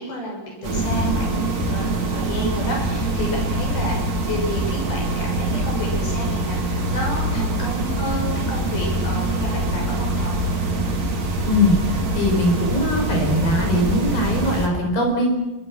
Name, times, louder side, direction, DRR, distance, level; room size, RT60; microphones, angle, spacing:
voice 1, 0.0-10.4, left 1 dB, 80° left, 0 dB, 8.6 m, -31 dB
sound 1, 0.6-14.7, right 2 dB, 45° right, 4.3 m, -24 dB
voice 2, 11.4-15.3, left 1 dB, 65° left, 2 dB, 6.9 m, -21 dB
27.5 x 24.5 x 6.1 m, 1.1 s
omnidirectional pair, 4.3 m